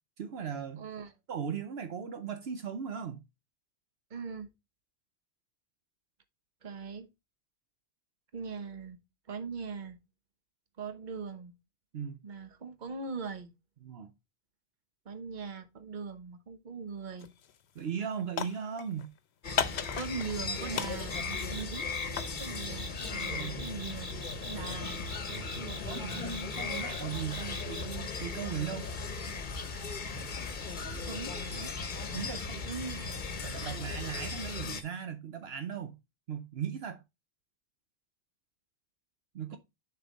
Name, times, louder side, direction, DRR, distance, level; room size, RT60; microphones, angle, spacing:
voice 1, 0.2-0.8 1.3-3.2 11.9-12.2 13.8-14.1 17.8-19.1 23.3-23.7 25.9-28.9 32.1-32.6 33.4-36.0 36.3-37.0 39.3-39.6, right 7 dB, 70° right, 1.0 m, -38 dB
voice 2, 0.8-1.1 4.1-4.5 6.6-7.1 8.3-9.0 9.3-10.0 10.8-11.5 12.2-13.5 15.0-17.3 19.9-22.1 22.4-26.2 30.8-31.7 32.6-33.9 39.5-39.6, right 5 dB, 50° right, 1.1 m, -41 dB
sound 1, 17.2-17.5 17.8-19.1 19.6-20.5 20.7-22.4, left 8 dB, 80° left, 0.9 m, -35 dB
sound 2, 19.4-34.8, left 4 dB, 50° left, 1.1 m, -37 dB
sound 3, 21.1-28.0, left 2 dB, 10° right, 3.2 m, -43 dB
6.8 x 4.4 x 4.0 m
omnidirectional pair, 1.1 m